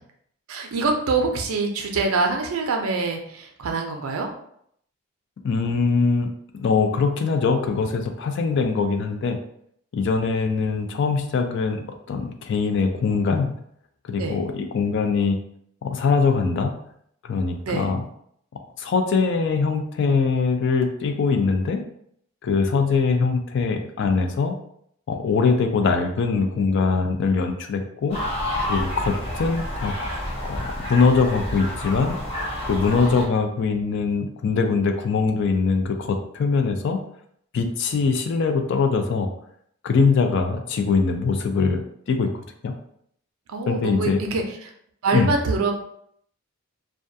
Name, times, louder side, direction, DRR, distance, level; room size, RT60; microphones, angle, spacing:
voice 1, 0.5-4.3 14.2-14.4 17.6-17.9 43.5-44.7 45.0-45.7, right 3 dB, 75° right, 3 dB, 0.4 m, -25 dB
voice 2, 5.4-9.4 9.9-13.5 14.1-15.4 15.8-16.7 17.2-18.0 18.8-21.8 22.4-24.5 25.1-28.2 28.7-29.9 30.4-32.2 32.6-37.0 37.5-39.3 39.8-42.7 43.7-44.2 45.1-45.3, left 4 dB, 55° left, 5 dB, 0.3 m, -22 dB
sound 1, 28.1-33.3, left 1 dB, 25° left, 0.8 m, -29 dB
2.3 x 2.2 x 2.6 m, 0.69 s
head